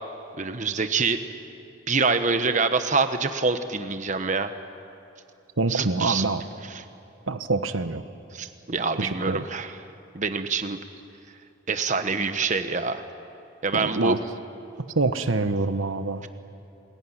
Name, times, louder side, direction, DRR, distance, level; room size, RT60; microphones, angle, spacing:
voice 1, 0.4-1.2 1.9-4.5 5.7-6.2 8.3-9.7 10.1-10.8 11.7-13.0 13.6-14.2, right 4 dB, 35° right, 9 dB, 1.1 m, -25 dB
voice 2, 5.6-6.4 7.3-8.0 8.9-9.4 13.7-14.2 14.9-16.3, right 3 dB, 75° right, 10 dB, 1.2 m, -25 dB
28.0 x 20.5 x 9.9 m, 2.7 s
head